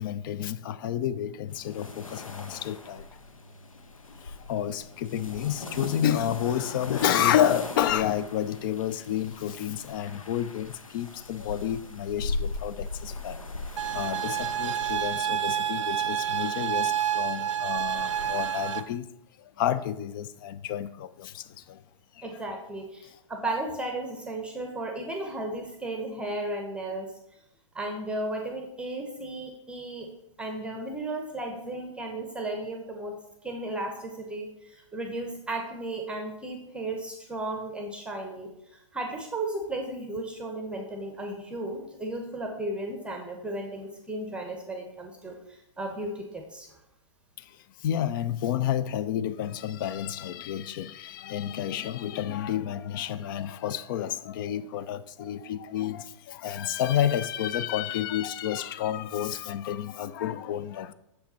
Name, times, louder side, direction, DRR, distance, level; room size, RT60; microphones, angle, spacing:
voice 1, 0.0-3.1 4.2-13.4 13.9-19.1 19.4-21.8 22.2-22.3 47.4-47.5 47.8-60.9, left 10 dB, 40° left, 0.4 m, -30 dB
sound 1, 1.5-18.8, left 3 dB, 85° left, 0.8 m, -40 dB
sound 2, 13.8-18.8, right 10 dB, 70° right, 0.5 m, -29 dB
voice 2, 22.2-27.1 27.7-30.1 30.4-46.7, right 2 dB, 5° right, 0.8 m, -35 dB
6.5 x 5.6 x 4.2 m
figure-of-eight pair, 115°, 17 cm